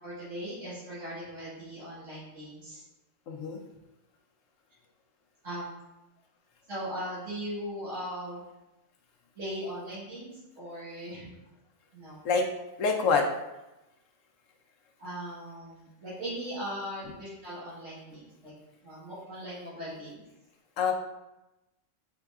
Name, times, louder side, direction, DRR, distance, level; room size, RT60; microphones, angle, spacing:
voice 1, 0.0-2.8 5.4-5.8 6.7-8.4 9.4-11.3 11.9-12.2 15.0-18.5 18.8-20.2, equal, 80° right, -11 dB, 1.8 m, -39 dB
voice 2, 3.3-3.6 12.2-12.5 12.8-13.3 20.8-20.9, left 5 dB, 85° left, 2 dB, 1.0 m, -25 dB
4.6 x 3.5 x 2.4 m, 0.97 s
omnidirectional pair, 1.3 m